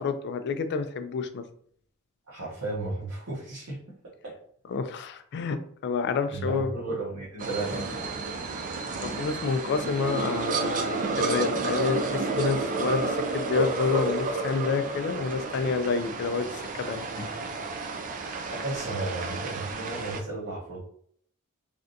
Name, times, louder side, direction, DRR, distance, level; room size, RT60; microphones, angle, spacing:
voice 1, 0.0-1.4 4.7-6.7 9.0-17.4, left 5 dB, 50° left, 9 dB, 0.3 m, -29 dB
voice 2, 2.3-3.8 4.2-4.3 6.3-8.1 18.5-20.9, right 2 dB, 70° right, -8 dB, 1.0 m, -34 dB
sound 1, 7.4-20.2, right 3 dB, 35° right, 0.3 m, -31 dB
3.3 x 2.5 x 2.6 m, 0.62 s
head